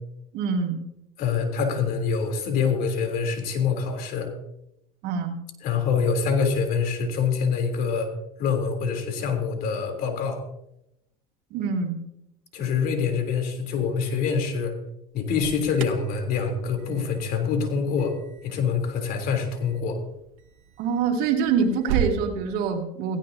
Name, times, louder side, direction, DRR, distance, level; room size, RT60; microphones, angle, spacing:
voice 1, 0.3-0.8 5.0-5.4 11.5-12.0 20.8-23.2, right 5 dB, 65° right, 2 dB, 2.8 m, -25 dB
voice 2, 1.2-4.3 5.6-8.1 8.4-10.4 12.5-14.7 15.1-18.1 18.4-20.0, left 5 dB, 60° left, 4 dB, 3.4 m, -25 dB
Alarm, 15.1-22.2, right 9 dB, 90° right, 1.1 m, -36 dB
17.5 x 16.0 x 2.8 m, 0.83 s
supercardioid pair, 95°, 17 cm